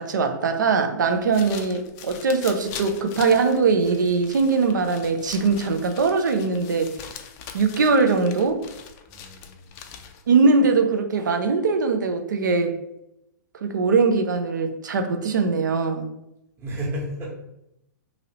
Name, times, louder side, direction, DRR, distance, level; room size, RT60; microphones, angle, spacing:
voice 1, 0.0-7.0 7.5-8.6 10.3-12.8 13.6-16.1, right 4 dB, 75° right, 6 dB, 0.5 m, -21 dB
sound 1, 1.1-10.3, left 7 dB, 30° left, 0.3 m, -42 dB
voice 2, 9.1-10.0 16.6-17.3, equal, 20° right, -4 dB, 1.1 m, -33 dB
2.9 x 2.7 x 2.9 m, 0.84 s
hypercardioid pair, 120°, 10 cm